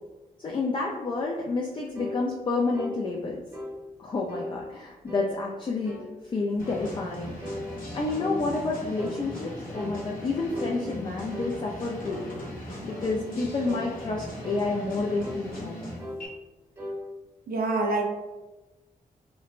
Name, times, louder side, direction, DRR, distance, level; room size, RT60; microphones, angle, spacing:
voice 1, 0.4-3.4 4.0-5.9 6.3-7.3 7.9-12.2 12.8-15.9, left 3 dB, 35° left, -1 dB, 0.3 m, -29 dB
sound 1, 1.9-2.2 2.7-3.0 3.5-3.8 4.3-4.5 5.1-5.3 5.8-6.1 6.6-6.9 7.4-8.4 9.0-9.2 9.7-10.0 10.5-10.8 11.3-11.5 12.1-12.3 12.9-13.1 13.6-13.9 14.4-14.7 15.2-15.4 16.0-16.2 16.8-17.0, left 1 dB, 20° right, 0.8 m, -37 dB
sound 2, 6.6-16.3, left 1 dB, 65° left, 0.8 m, -39 dB
voice 2, 17.5-18.0, right 2 dB, 80° right, 1 dB, 0.6 m, -25 dB
3.0 x 2.0 x 2.4 m, 1.1 s
cardioid pair, 70°, 15 cm